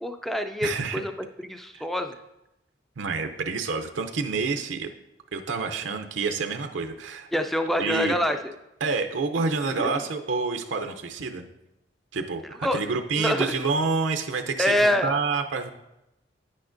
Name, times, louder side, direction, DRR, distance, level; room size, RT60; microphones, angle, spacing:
voice 1, 0.0-2.2 7.3-8.4 9.7-10.0 12.6-12.8 13.2-13.6 14.6-15.1, left 1 dB, ahead, 6 dB, 0.3 m, -26 dB
voice 2, 0.6-1.0 1.8-1.9 3.0-4.9 5.3-7.3 7.8-8.1 8.8-11.5 12.1-15.7, right 4 dB, 75° right, 6 dB, 0.5 m, -28 dB
10.0 x 8.5 x 2.5 m, 0.91 s
head